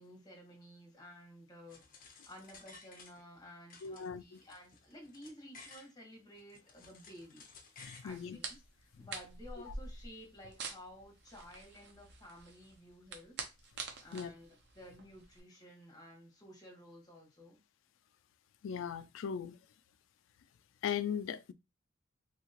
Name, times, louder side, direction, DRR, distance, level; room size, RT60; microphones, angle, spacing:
voice 1, 0.0-7.5 8.0-13.4 14.0-17.6, left 1 dB, 20° left, 1.3 m, -54 dB
sound 1, 1.7-3.4 3.7-5.9 6.4-8.1, left 4 dB, 45° left, 0.7 m, -56 dB
voice 2, 3.8-4.4 7.8-8.4 14.1-14.3 18.6-19.6 20.8-21.5, left 8 dB, 75° left, 0.3 m, -38 dB
sound 2, 8.1-15.4, right 4 dB, 60° right, 0.6 m, -47 dB
2.9 x 2.8 x 2.8 m
head